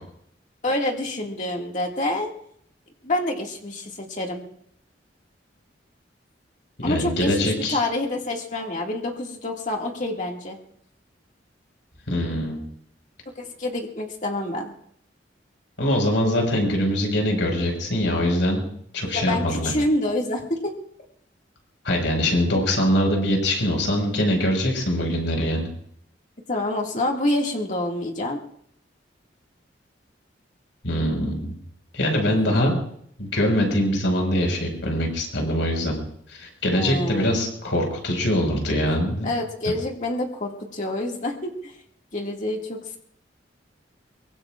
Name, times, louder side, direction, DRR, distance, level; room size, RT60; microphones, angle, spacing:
voice 1, 0.6-2.3 3.0-4.4 6.8-10.6 13.4-14.7 19.0-20.8 26.5-28.4 32.3-32.7 36.7-37.4 39.2-41.8 42.1-43.0, left 1 dB, 45° left, 0 dB, 2.1 m, -27 dB
voice 2, 6.8-7.8 12.1-12.6 15.8-18.6 18.9-19.7 21.8-25.7 30.8-31.6 31.9-32.8 33.2-35.9 36.3-39.3 39.7-39.8, equal, 80° left, 1 dB, 5.2 m, -23 dB
23.5 x 23.5 x 2.5 m, 0.68 s
head